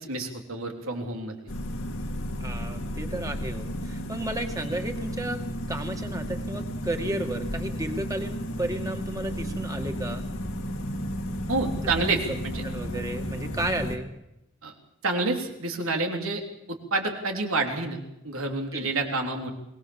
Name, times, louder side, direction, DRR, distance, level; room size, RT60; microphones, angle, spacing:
voice 1, 0.1-1.4 11.5-12.6 14.6-14.7 15.0-16.4 16.7-19.5, right 3 dB, 90° right, 3 dB, 3.5 m, -28 dB
sound 1, 1.5-14.0, equal, 80° left, 2.5 m, -33 dB
voice 2, 2.4-5.4 5.7-10.2 11.8-11.9 12.3-14.1 18.7-18.9, right 1 dB, 15° right, 4 dB, 2.2 m, -33 dB
22.5 x 19.5 x 7.2 m, 0.83 s
head